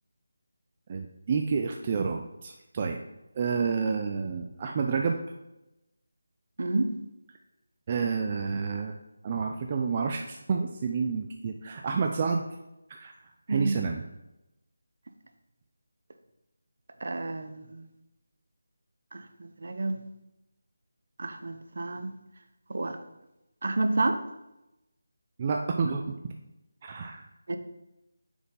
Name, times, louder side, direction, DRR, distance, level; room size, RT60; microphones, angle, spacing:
voice 1, 0.9-3.0 3.4-5.2 7.9-8.9 9.2-12.4 12.9-13.1 13.5-14.0 25.4-26.2 26.8-27.2, right 5 dB, 25° right, 3 dB, 0.3 m, -29 dB
voice 2, 6.6-7.0 13.5-13.8 17.0-17.8 19.1-20.0 21.2-22.1 22.7-23.0 23.6-24.2 27.5-27.6, right 2 dB, 55° right, 8 dB, 0.6 m, -30 dB
7.0 x 4.5 x 3.7 m, 0.94 s
figure-of-eight pair, 175°, 0 cm